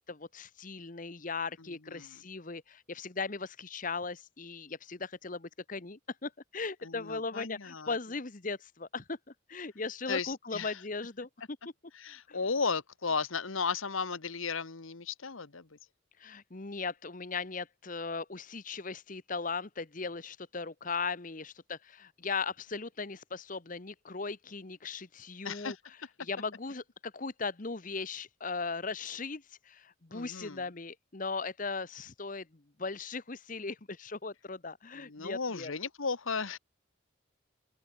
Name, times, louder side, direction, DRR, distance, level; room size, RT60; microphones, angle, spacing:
voice 1, 0.0-9.2 9.5-11.6 12.3-12.4 16.2-25.8 26.2-35.7, left 4 dB, 40° left, 1.1 m, -38 dB
voice 2, 6.8-7.9 10.1-10.7 12.0-15.7 25.4-25.8 30.1-30.6 35.0-36.6, left 5 dB, 85° left, 1.3 m, -35 dB
open air
head